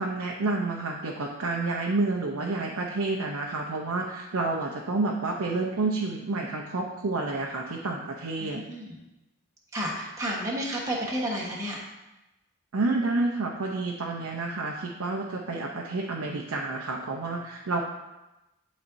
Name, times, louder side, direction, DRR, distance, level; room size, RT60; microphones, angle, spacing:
voice 1, 0.0-8.6 12.7-17.8, right 3 dB, 80° right, -1 dB, 0.7 m, -29 dB
voice 2, 8.4-9.0 9.7-11.8, equal, 15° right, -4 dB, 1.2 m, -31 dB
11.0 x 4.2 x 2.6 m, 0.99 s
head